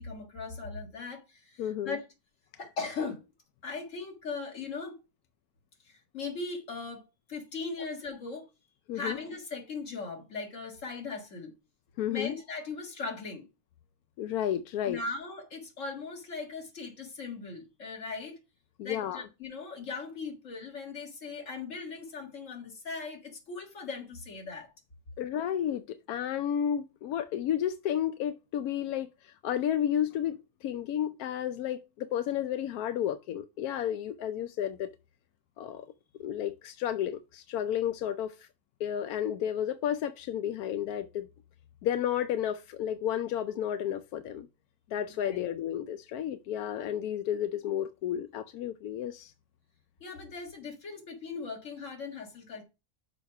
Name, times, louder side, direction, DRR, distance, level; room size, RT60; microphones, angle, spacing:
voice 1, 0.0-2.0 2.6-3.2 3.6-5.0 5.8-7.0 7.3-8.5 8.9-11.5 12.1-13.5 14.9-18.4 18.8-24.7 45.2-45.4 50.0-52.6, left 4 dB, 55° left, 2.2 m, -39 dB
voice 2, 1.6-2.0 8.9-9.2 12.0-12.3 14.2-15.0 18.8-19.2 25.2-34.9 35.6-35.9 36.2-38.5 38.8-41.3 41.8-44.5 44.9-49.3, left 10 dB, 90° left, 1.1 m, -32 dB
6.4 x 4.8 x 5.7 m
omnidirectional pair, 1.5 m